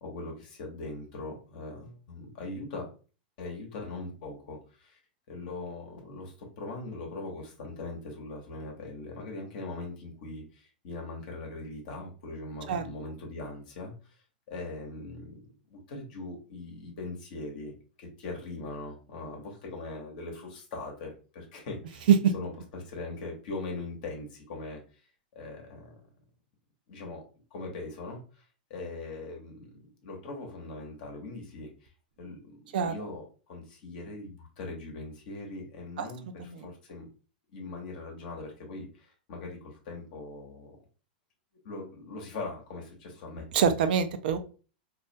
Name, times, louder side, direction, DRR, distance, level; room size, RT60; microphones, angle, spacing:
voice 1, 0.0-2.9 3.4-5.0 5.3-14.2 14.5-17.7 18.0-22.1 22.3-24.8 25.3-26.0 26.9-27.2 27.5-28.4 28.7-31.7 32.2-37.1 37.5-40.8 41.6-43.5, left 2 dB, 65° left, 0 dB, 0.8 m, -41 dB
voice 2, 43.5-44.4, right 7 dB, 75° right, 10 dB, 0.4 m, -25 dB
2.4 x 2.1 x 2.5 m, 0.36 s
hypercardioid pair, 130°, 5 cm